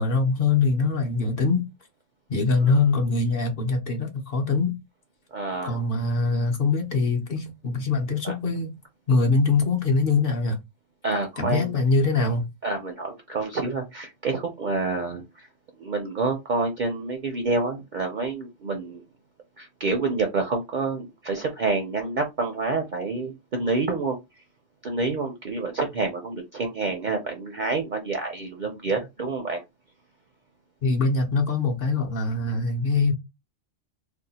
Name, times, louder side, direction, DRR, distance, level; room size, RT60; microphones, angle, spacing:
voice 1, 0.0-1.7 2.3-4.8 5.6-8.7 9.1-10.6 11.4-12.5 30.8-33.1, left 3 dB, 55° left, 0.8 m, -23 dB
voice 2, 5.3-5.8 8.2-8.3 11.0-11.7 12.6-15.5 15.8-19.0 19.6-24.2 24.8-29.6, right 3 dB, 55° right, 0.5 m, -28 dB
2.7 x 2.1 x 4.0 m
omnidirectional pair, 1.3 m